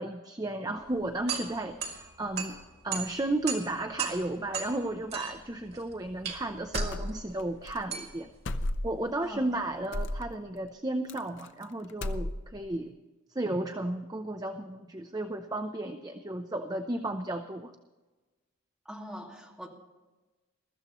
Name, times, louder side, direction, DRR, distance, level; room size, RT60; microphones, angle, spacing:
voice 1, 0.0-2.6 2.8-8.3 8.8-12.9 13.3-17.7, right 1 dB, 20° right, 6 dB, 0.6 m, -33 dB
sound 1, 0.8-9.9, right 6 dB, 50° right, 2.5 m, -39 dB
sound 2, 6.7-7.4 7.7-7.8 8.4-9.1 9.9-10.3 11.1-11.6 11.9-12.6, left 1 dB, 60° left, 0.7 m, -33 dB
voice 2, 18.9-19.7, equal, ahead, -2 dB, 2.3 m, -42 dB
22.0 x 14.0 x 3.0 m, 1.2 s
head